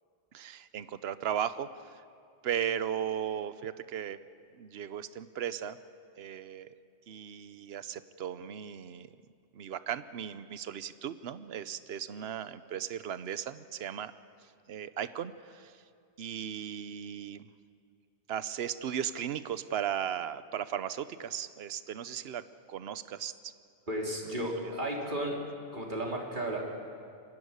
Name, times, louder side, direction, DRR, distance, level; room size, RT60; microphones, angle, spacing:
voice 1, 0.3-2.0 2.4-4.2 4.6-5.8 6.2-6.7 7.1-9.2 9.5-14.1 14.7-15.8 16.2-17.5 18.3-23.5 24.6-24.8, right 9 dB, 65° right, 13 dB, 1.0 m, -36 dB
voice 2, 23.9-25.4 25.7-26.6, right 1 dB, 45° right, -1 dB, 3.5 m, -33 dB
24.0 x 16.0 x 9.7 m, 2.3 s
omnidirectional pair, 1.2 m